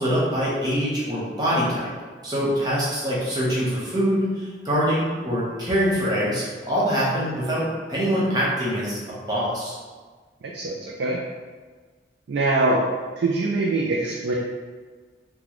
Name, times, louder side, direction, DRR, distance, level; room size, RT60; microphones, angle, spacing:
voice 1, 0.0-1.9 2.2-9.0 9.3-9.7, equal, 20° right, -7 dB, 0.9 m, -24 dB
voice 2, 10.4-11.2 12.3-12.8 13.2-14.3, right 2 dB, 75° right, -2 dB, 0.4 m, -23 dB
3.9 x 2.2 x 3.0 m, 1.4 s
head